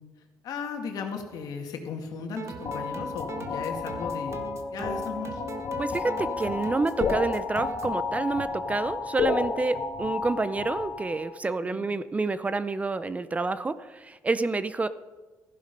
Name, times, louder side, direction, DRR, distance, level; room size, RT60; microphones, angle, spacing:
voice 1, 0.4-4.4 4.7-5.4 11.6-11.9, left 5 dB, 75° left, 4 dB, 2.0 m, -36 dB
sound 1, 2.3-7.9, right 4 dB, 45° right, 1.2 m, -40 dB
sound 2, 2.7-11.4, left 5 dB, 55° left, 1.6 m, -32 dB
voice 2, 5.8-14.9, right 3 dB, 20° right, 14 dB, 0.5 m, -28 dB
14.5 x 11.0 x 5.3 m, 1.3 s
cardioid pair, 110°, 7 cm